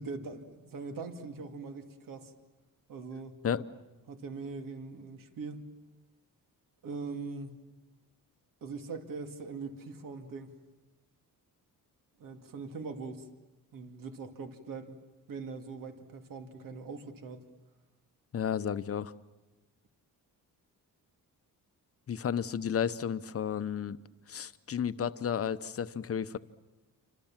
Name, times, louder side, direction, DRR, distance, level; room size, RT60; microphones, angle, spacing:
voice 1, 0.0-2.3 2.9-3.4 4.1-5.6 6.8-7.6 8.6-10.5 12.2-13.3 13.7-15.0 15.3-17.5, right 4 dB, 70° right, 6 dB, 2.5 m, -41 dB
voice 2, 18.3-19.1 22.1-24.0 24.3-26.4, left 8 dB, 40° left, 13 dB, 0.9 m, -32 dB
28.5 x 26.0 x 7.4 m, 1.1 s
wide cardioid pair, 145°, 34 cm